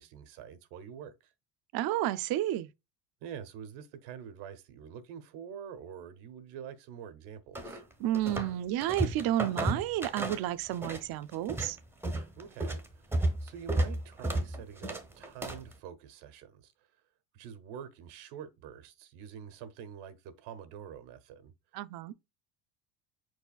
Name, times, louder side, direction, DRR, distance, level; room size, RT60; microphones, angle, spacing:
voice 1, 0.0-1.3 3.2-7.8 12.4-16.7 17.3-21.5, right 8 dB, 80° right, 1.0 m, -46 dB
voice 2, 1.7-2.7 8.0-11.8 21.7-22.1, right 13 dB, 50° right, 0.5 m, -31 dB
sound 1, 7.5-8.5 8.8-11.0 11.3-15.7, right 1 dB, 5° right, 0.7 m, -33 dB
5.0 x 4.7 x 2.3 m
supercardioid pair, 115°, 49 cm